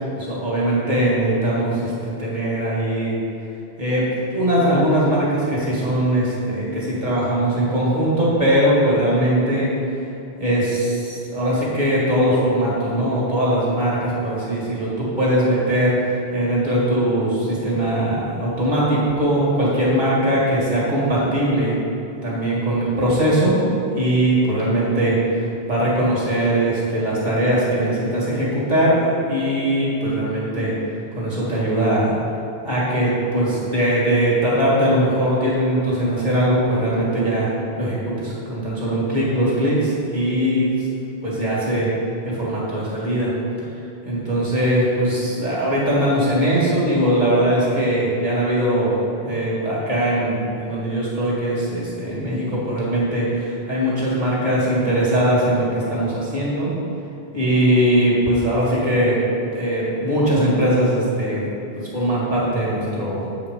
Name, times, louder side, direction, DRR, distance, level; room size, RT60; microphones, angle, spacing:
voice 1, 0.1-3.1 3.8-4.1 4.3-9.7 10.4-21.8 22.2-23.7 23.9-25.4 25.7-30.7 31.2-32.1 32.6-37.5 37.8-40.7 41.2-41.9 42.2-43.3 44.0-56.7 57.3-59.2 59.5-61.4 61.8-63.3, right 1 dB, 45° right, -7 dB, 2.2 m, -20 dB
7.9 x 5.1 x 5.0 m, 2.8 s
omnidirectional pair, 1.1 m